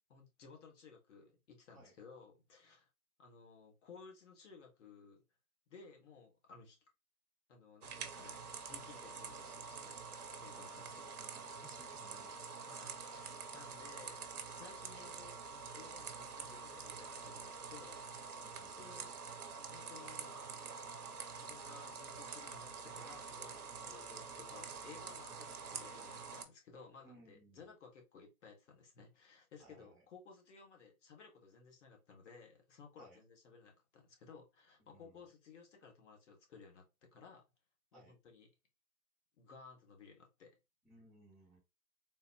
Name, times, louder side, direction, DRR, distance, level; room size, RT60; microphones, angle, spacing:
voice 1, 0.0-2.9 3.2-5.2 5.7-6.8 7.5-10.0 10.4-11.1 12.6-15.4 15.7-18.3 18.7-19.1 19.7-20.5 21.3-37.4 37.9-38.5 39.4-40.6, left 5 dB, 50° left, 1.2 m, -58 dB
sound 1, 7.8-26.4, right 5 dB, 80° right, 0.8 m, -47 dB
voice 2, 10.5-12.4 18.4-18.9 23.8-24.0 27.0-27.7 29.6-30.0 33.0-33.2 34.8-35.2 37.9-38.1 40.8-41.6, right 2 dB, ahead, 0.7 m, -63 dB
3.8 x 2.2 x 2.6 m
hypercardioid pair, 135°, 45 cm